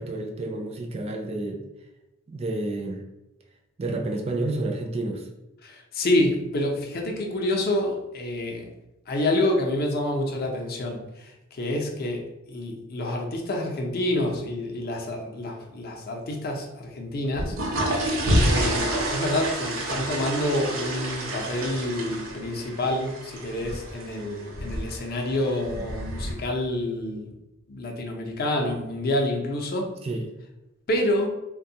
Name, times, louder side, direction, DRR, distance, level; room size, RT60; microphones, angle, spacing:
voice 1, 0.0-1.6 2.3-3.0 3.8-5.2 30.0-30.3, right 2 dB, 30° right, 2 dB, 0.3 m, -30 dB
voice 2, 5.6-8.7 9.1-17.9 18.4-27.3 27.7-29.9 30.9-31.3, left 1 dB, 50° left, 1 dB, 0.5 m, -28 dB
sound 1, 17.3-26.3, right 1 dB, 85° right, 0.7 m, -28 dB
3.3 x 2.2 x 2.7 m, 0.93 s
head